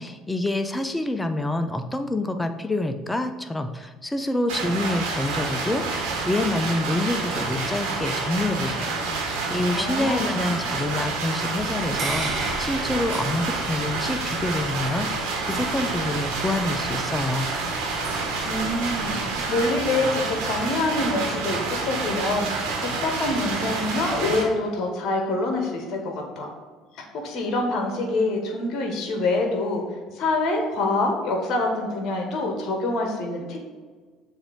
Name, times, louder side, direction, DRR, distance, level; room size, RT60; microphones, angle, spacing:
voice 1, 0.0-17.5, left 2 dB, 10° left, 8 dB, 0.6 m, -27 dB
sound 1, 4.5-24.4, right 3 dB, 65° right, 1.3 m, -28 dB
voice 2, 9.7-10.4 18.4-26.5 27.1-29.8 30.1-33.6, left 2 dB, 50° left, 2 dB, 1.1 m, -26 dB
sound 2, 11.6-19.3, right 2 dB, 35° right, 1.1 m, -37 dB
7.0 x 2.7 x 5.1 m, 1.4 s
figure-of-eight pair, 60°, 0 cm